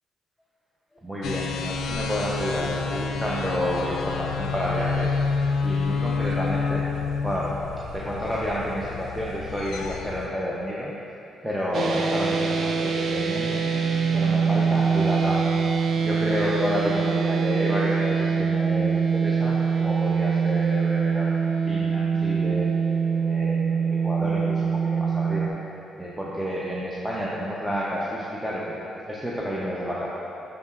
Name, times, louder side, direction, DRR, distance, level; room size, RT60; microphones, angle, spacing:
voice 1, 1.0-5.1 5.6-6.9 7.2-7.5 7.9-10.9 11.4-13.6 14.1-15.5 16.0-22.7 23.2-25.5 26.0-30.1, equal, ahead, -7 dB, 0.7 m, -30 dB
sound 1, 1.2-10.3, left 5 dB, 75° left, 0.4 m, -29 dB
sound 2, 11.7-25.5, right 6 dB, 60° right, 0.4 m, -24 dB
11.5 x 3.9 x 2.4 m, 2.9 s
cardioid pair, 90°, 0 cm